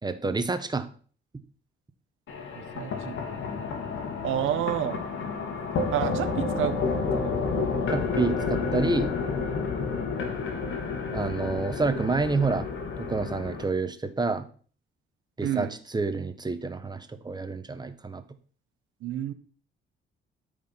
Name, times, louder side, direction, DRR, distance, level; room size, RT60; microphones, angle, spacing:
voice 1, 0.0-0.9 7.9-9.1 11.1-12.7 13.0-14.5 15.4-18.2, right 3 dB, 20° right, 9 dB, 1.3 m, -28 dB
sound 1, 2.3-13.6, left 4 dB, 75° left, 2.3 m, -30 dB
voice 2, 2.5-3.2 4.2-5.0 5.9-6.8 7.1-7.3 15.4-15.7 19.0-19.3, right 12 dB, 85° right, 11 dB, 1.1 m, -29 dB
13.0 x 5.1 x 5.8 m, 0.43 s
cardioid pair, 90°, 20 cm